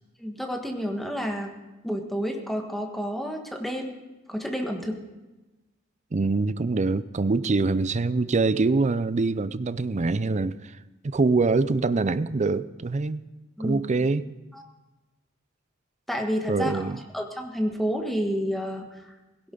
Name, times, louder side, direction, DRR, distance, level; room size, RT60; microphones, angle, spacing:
voice 1, 0.2-1.5 1.8-3.9 4.3-5.0 13.6-13.8 14.5-14.6 16.1-19.1, equal, ahead, 3 dB, 1.4 m, -30 dB
voice 2, 6.1-10.7 11.0-13.2 13.6-14.3 16.5-17.0, right 3 dB, 35° right, 15 dB, 0.5 m, -24 dB
17.0 x 16.5 x 3.9 m, 1.1 s
head